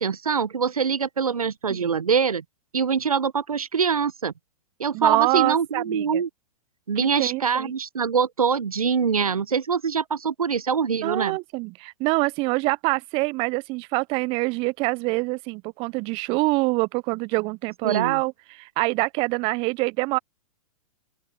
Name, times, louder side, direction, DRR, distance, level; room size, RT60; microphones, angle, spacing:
voice 1, 0.0-2.4 2.7-4.3 4.8-6.3 6.9-11.4 17.8-18.2, right 6 dB, 80° right, 1.1 m, -24 dB
voice 2, 4.9-6.2 7.2-7.7 11.0-20.2, right 25 dB, 30° right, 0.5 m, -25 dB
open air
figure-of-eight pair, 110°, 18 cm